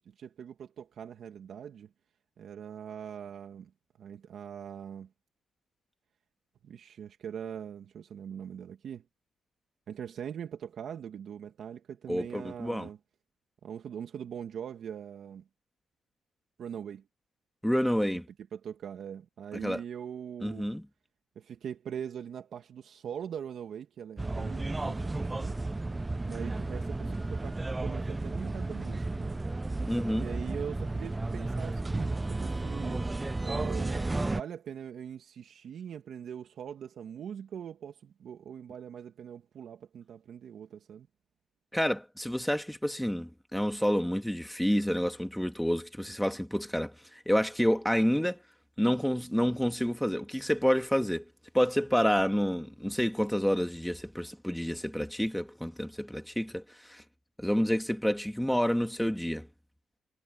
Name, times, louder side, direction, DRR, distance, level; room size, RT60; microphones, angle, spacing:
voice 1, 0.0-1.9 2.4-3.7 4.0-5.1 6.6-9.0 9.9-13.0 13.6-15.4 16.6-17.1 18.5-20.7 21.4-25.6 26.3-29.4 30.1-33.1 33.4-41.1, right 8 dB, 65° right, 2.2 m, -42 dB
voice 2, 12.1-12.9 17.6-18.3 19.6-19.8 20.4-20.8 29.9-30.3 41.7-48.4 48.8-51.3 51.5-57.0 57.4-59.5, equal, ahead, 2.2 m, -29 dB
sound 1, 24.2-34.4, right 2 dB, 15° right, 0.5 m, -33 dB
cardioid pair, 90°, 0 cm